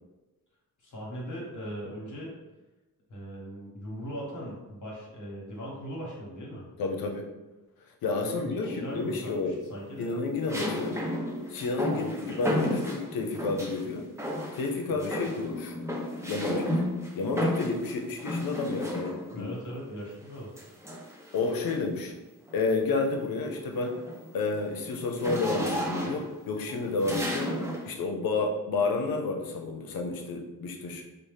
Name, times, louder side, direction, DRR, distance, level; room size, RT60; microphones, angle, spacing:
voice 1, 0.8-2.3 3.1-6.7 8.2-10.1 12.0-12.2 14.9-15.1 19.3-20.5, equal, 60° left, -4 dB, 1.1 m, -39 dB
voice 2, 6.8-7.3 8.0-9.6 10.0-11.0 11.5-14.1 14.5-15.8 16.2-16.8 17.2-19.5 21.3-22.1 22.5-24.0 24.3-27.5 27.9-31.0, left 3 dB, 90° left, 2 dB, 0.6 m, -30 dB
sound 1, 8.6-9.2 10.5-13.8 14.2-14.7 15.0-19.4 20.6-22.0 22.5-22.7 23.1-27.9, equal, 10° right, 0.7 m, -33 dB
4.0 x 2.1 x 3.3 m, 1.1 s
cardioid pair, 100°, 34 cm